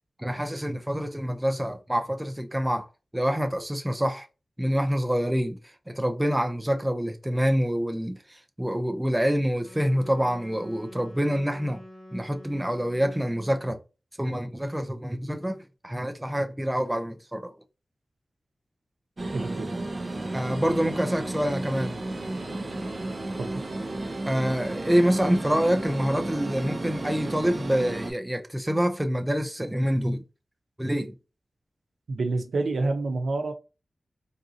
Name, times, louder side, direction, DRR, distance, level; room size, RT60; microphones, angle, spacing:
voice 1, 0.2-2.9 3.1-4.3 4.6-11.8 12.1-13.8 14.2-17.5 20.3-22.0 24.3-30.2 30.8-31.2, equal, 10° right, 0.4 m, -26 dB
Wind instrument woodwind instrument, 9.6-13.8, left 1 dB, 30° left, 0.9 m, -47 dB
sound 1, 19.2-28.1, right 2 dB, 35° right, 0.7 m, -33 dB
voice 2, 19.3-19.7 23.4-23.6 32.1-33.5, right 3 dB, 90° right, 0.7 m, -28 dB
3.7 x 2.6 x 2.7 m
wide cardioid pair, 115°, 0 cm